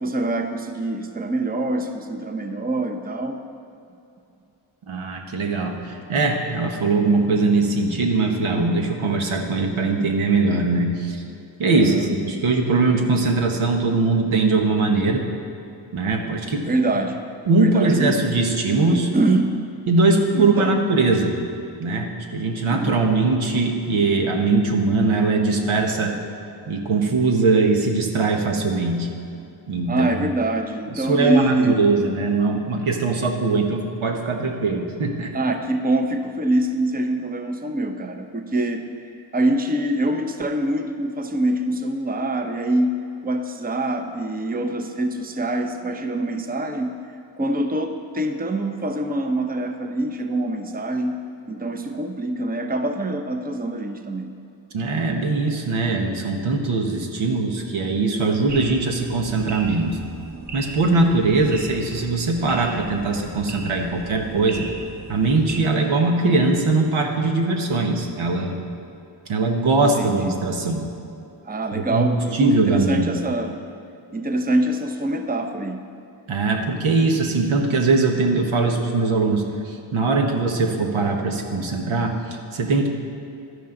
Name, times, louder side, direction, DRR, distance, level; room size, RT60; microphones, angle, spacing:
voice 1, 0.0-3.4 11.7-12.1 16.6-17.2 17.6-18.2 18.9-19.6 20.3-20.8 22.7-23.0 29.9-31.8 35.3-38.9 39.3-43.0 43.2-47.0 47.4-51.2 51.5-54.3 69.8-70.3 71.4-73.6 74.1-75.8, right 1 dB, 20° right, 6 dB, 0.8 m, -24 dB
voice 2, 4.9-11.2 11.6-15.2 15.9-16.7 17.5-19.1 19.9-21.4 21.8-26.2 26.7-29.1 29.7-30.3 30.9-35.3 54.7-60.0 60.5-64.7 65.1-68.6 69.3-70.8 71.7-73.1 76.3-82.9, right 3 dB, 80° right, 2 dB, 1.4 m, -21 dB
sound 1, 58.5-65.6, right 2 dB, 35° right, 1.3 m, -37 dB
12.0 x 10.0 x 3.9 m, 2.7 s
cardioid pair, 55°, 48 cm